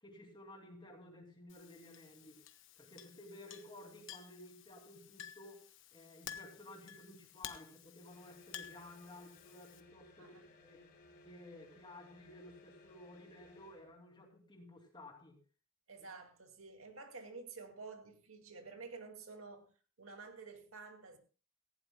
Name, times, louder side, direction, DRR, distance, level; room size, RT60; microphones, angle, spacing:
voice 1, 0.0-2.4 2.8-5.6 5.9-10.9 11.2-15.4, left 1 dB, 20° left, 2.5 m, -55 dB
Chink clink, 1.5-9.8, left 10 dB, 65° left, 1.2 m, -53 dB
sound 1, 8.0-13.9, left 2 dB, 45° left, 3.6 m, -61 dB
voice 2, 15.9-19.7 20.0-21.2, right 4 dB, 85° right, 2.2 m, -51 dB
18.0 x 16.0 x 2.2 m
head